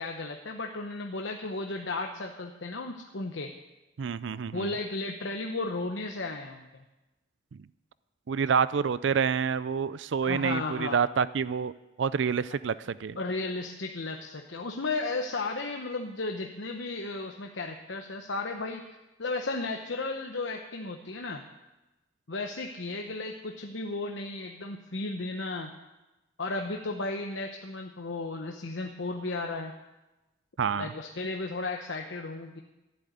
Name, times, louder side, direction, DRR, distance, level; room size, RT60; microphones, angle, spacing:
voice 1, 0.0-3.5 4.5-6.8 10.2-11.0 13.2-18.8 19.2-21.4 22.3-25.7 26.4-29.7 30.7-32.6, left 3 dB, 80° left, 3 dB, 1.0 m, -34 dB
voice 2, 4.0-4.7 8.3-11.7 12.0-13.2 30.6-30.9, right 6 dB, 75° right, 16 dB, 0.4 m, -28 dB
14.5 x 7.8 x 9.3 m, 1.0 s
head